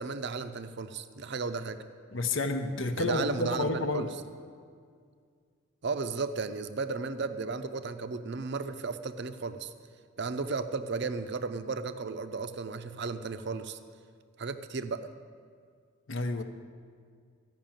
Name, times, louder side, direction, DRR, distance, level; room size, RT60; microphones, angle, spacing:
voice 1, 0.0-1.8 3.0-4.1 5.8-9.7 10.2-13.8 14.4-15.1, right 4 dB, 55° right, 10 dB, 0.5 m, -34 dB
voice 2, 2.1-4.1 16.1-16.4, left 2 dB, 60° left, 7 dB, 0.8 m, -30 dB
14.5 x 5.9 x 8.9 m, 2.1 s
head